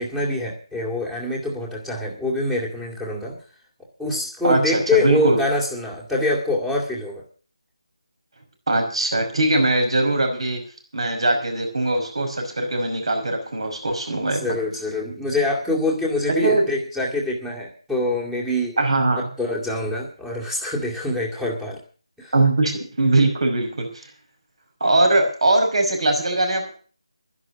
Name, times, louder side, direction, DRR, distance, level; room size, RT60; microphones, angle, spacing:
voice 1, 0.0-3.4 4.0-7.2 14.4-18.7 19.4-21.8 22.2-22.3, left 2 dB, 5° right, -2 dB, 2.1 m, -25 dB
voice 2, 4.4-5.4 8.7-10.6 10.9-14.5 16.4-16.7 18.8-19.3 22.3-24.0 24.8-26.7, right 2 dB, 65° right, 5 dB, 5.5 m, -21 dB
12.0 x 11.0 x 7.2 m, 0.41 s
figure-of-eight pair, 160°, 3 cm